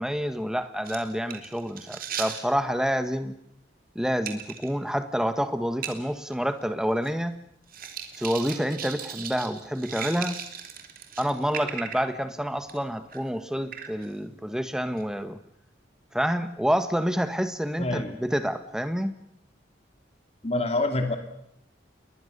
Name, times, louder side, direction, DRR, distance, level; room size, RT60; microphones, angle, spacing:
voice 1, 0.0-3.3 3.9-7.3 8.2-10.4 11.2-15.4 16.1-19.1, equal, 5° right, 9 dB, 1.5 m, -28 dB
sound 1, 0.8-2.5 4.3-4.7 5.1-5.2 5.8-6.0 6.3-6.4 6.6-7.2 7.7-12.2 12.6-12.8 13.1-13.3 13.7-14.1 15.0-15.1, right 8 dB, 50° right, 3.0 m, -37 dB
voice 2, 17.8-18.1 20.4-21.2, left 2 dB, 35° left, 5 dB, 2.5 m, -26 dB
29.5 x 21.5 x 6.9 m, 0.71 s
head